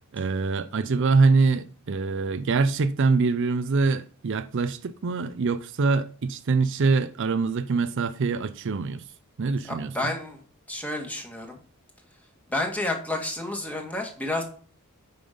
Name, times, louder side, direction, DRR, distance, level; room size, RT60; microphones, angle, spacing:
voice 1, 0.1-9.1 9.4-9.9, right 4 dB, 55° right, 0.5 m, -24 dB
voice 2, 9.7-10.4 10.7-11.6 12.5-14.4, left 2 dB, 5° left, 1.9 m, -30 dB
8.5 x 5.6 x 5.1 m
head